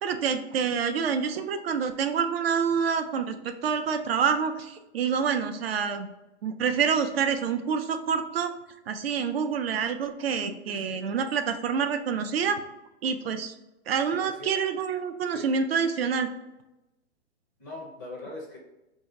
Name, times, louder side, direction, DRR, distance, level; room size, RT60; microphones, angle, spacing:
voice 1, 0.0-6.1 6.4-8.5 8.9-12.6 13.0-13.5 13.9-16.3, right 6 dB, 60° right, 8 dB, 0.5 m, -27 dB
voice 2, 10.7-11.0 14.2-14.5 15.3-15.5 17.6-18.6, left 2 dB, 20° left, -2 dB, 0.5 m, -41 dB
3.8 x 2.7 x 4.5 m, 0.96 s
hypercardioid pair, 165°, 35 cm